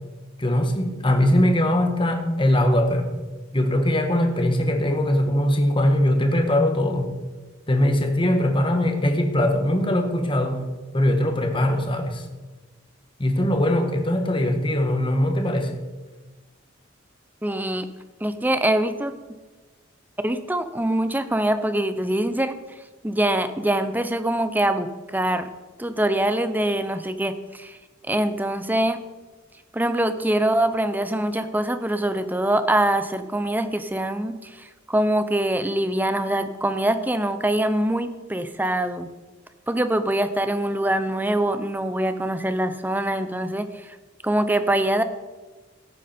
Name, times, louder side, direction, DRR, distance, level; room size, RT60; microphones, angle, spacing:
voice 1, 0.4-3.1 3.5-7.2 7.7-12.2 13.2-15.8, left 1 dB, 25° left, 4 dB, 1.5 m, -21 dB
voice 2, 17.4-17.9 18.2-19.1 20.2-22.6 23.0-25.5 25.8-27.8 28.1-29.0 29.7-39.1 39.7-43.9 44.2-45.0, right 1 dB, 10° right, 10 dB, 0.7 m, -24 dB
17.0 x 8.8 x 4.4 m, 1.3 s
head